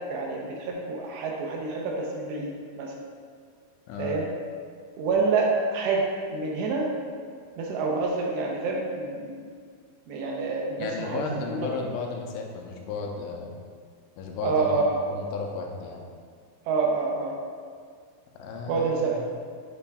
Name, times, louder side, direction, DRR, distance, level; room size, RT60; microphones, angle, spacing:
voice 1, 0.1-2.9 4.0-4.3 5.0-6.0 6.3-6.9 7.6-9.4 10.1-11.7 14.4-15.0 16.7-17.3 18.7-19.3, right 4 dB, 80° right, -1 dB, 2.7 m, -27 dB
voice 2, 3.9-4.2 10.8-13.5 14.2-16.0 18.4-19.2, left 4 dB, 85° left, 1 dB, 3.1 m, -34 dB
8.6 x 6.0 x 2.3 m, 2.1 s
omnidirectional pair, 5.3 m